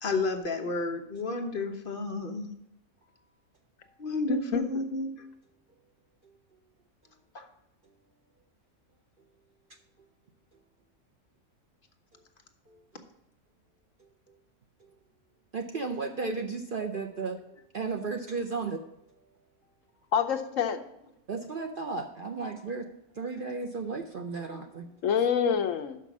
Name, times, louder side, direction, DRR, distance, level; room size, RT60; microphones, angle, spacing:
voice 1, 0.0-2.5 4.0-5.1 7.3-7.4, left 2 dB, 45° left, 4 dB, 1.0 m, -31 dB
voice 2, 4.3-4.6 20.1-20.8 25.0-26.0, left 7 dB, 70° left, 7 dB, 1.1 m, -26 dB
voice 3, 15.5-17.4 17.7-18.8 21.3-22.9 23.2-24.9, right 4 dB, 50° right, 4 dB, 0.7 m, -34 dB
6.0 x 5.8 x 7.2 m, 0.85 s
omnidirectional pair, 1.5 m